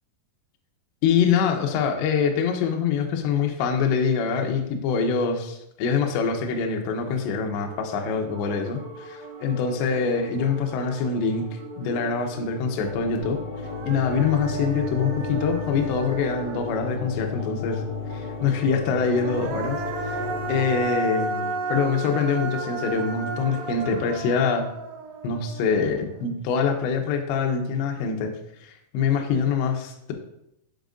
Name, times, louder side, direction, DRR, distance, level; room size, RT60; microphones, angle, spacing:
voice 1, 1.0-13.4 13.8-17.8 18.1-20.2 20.5-24.7 25.2-28.3 28.6-30.1, left 6 dB, 80° left, 2 dB, 2.8 m, -25 dB
sound 1, 6.6-24.2, right 1 dB, 70° right, 2.3 m, -42 dB
sound 2, 12.8-20.9, left 5 dB, 60° left, 4.0 m, -34 dB
Human voice, 13.1-13.2 13.6-17.3 18.9-26.2, right 3 dB, 90° right, 2.4 m, -33 dB
10.5 x 5.9 x 2.6 m, 0.80 s
omnidirectional pair, 5.9 m